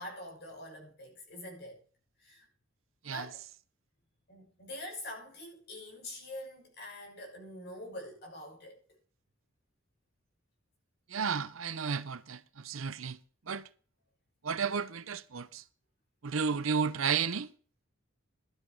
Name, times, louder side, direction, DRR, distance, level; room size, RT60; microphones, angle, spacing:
voice 1, 0.0-1.8 2.2-2.5 3.0-3.4 4.3-9.0, left 1 dB, 55° left, 6.2 m, -45 dB
voice 2, 11.1-13.2 13.5-13.6 14.4-15.6 16.2-17.5, right 6 dB, 80° right, 0.8 m, -32 dB
12.5 x 8.0 x 5.4 m
head